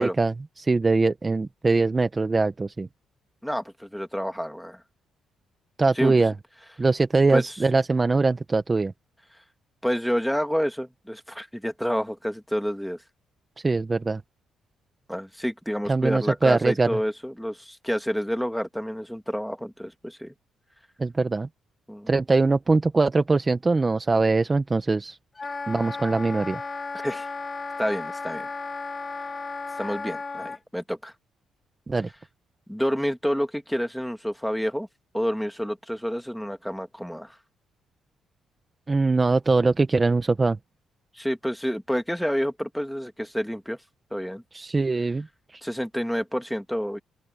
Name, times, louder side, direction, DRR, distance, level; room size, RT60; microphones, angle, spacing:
voice 1, 0.0-2.9 5.8-6.3 6.8-8.9 13.6-14.2 15.9-17.0 21.0-21.5 22.1-25.2 25.7-26.6 31.9-32.1 38.9-40.6 44.5-45.3 45.5-45.6, right 3 dB, 25° right, 1.0 m, -22 dB
voice 2, 3.4-4.8 6.0-6.1 7.3-7.6 9.8-13.0 15.1-20.3 21.9-22.1 27.0-27.3 27.8-28.5 29.8-31.1 32.7-34.9 35.1-37.4 41.1-43.8 44.1-44.4 45.6-47.0, equal, ahead, 2.2 m, -29 dB
Wind instrument woodwind instrument, 25.4-30.6, left 4 dB, 30° left, 2.7 m, -34 dB
open air
cardioid pair, 90°, 0 cm